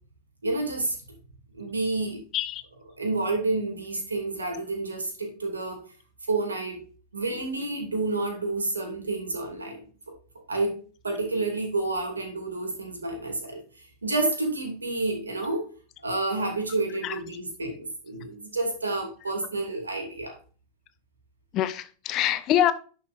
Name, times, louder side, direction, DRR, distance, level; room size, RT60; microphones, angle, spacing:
voice 1, 0.4-1.0 1.5-2.2 3.0-5.8 6.3-6.8 7.1-9.8 10.1-10.2 10.5-10.8 11.0-15.7 16.0-20.4, right 2 dB, 75° right, 2.7 m, -29 dB
voice 2, 21.5-22.7, left 11 dB, 35° left, 0.8 m, -24 dB
11.0 x 5.9 x 2.6 m
figure-of-eight pair, 90°, 0 cm